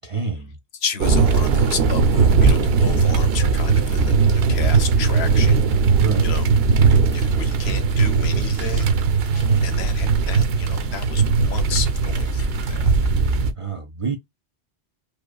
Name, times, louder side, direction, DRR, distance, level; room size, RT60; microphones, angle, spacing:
voice 1, 0.0-0.5 6.0-6.3 9.4-9.7 13.6-14.2, right 5 dB, 50° right, 0.4 m, -27 dB
voice 2, 0.7-5.6 6.2-6.5 7.1-8.9 9.2-12.9, left 7 dB, 75° left, 1.0 m, -32 dB
sound 1, 1.0-13.5, right 4 dB, 70° right, 0.9 m, -18 dB
4.9 x 2.0 x 2.2 m
omnidirectional pair, 1.1 m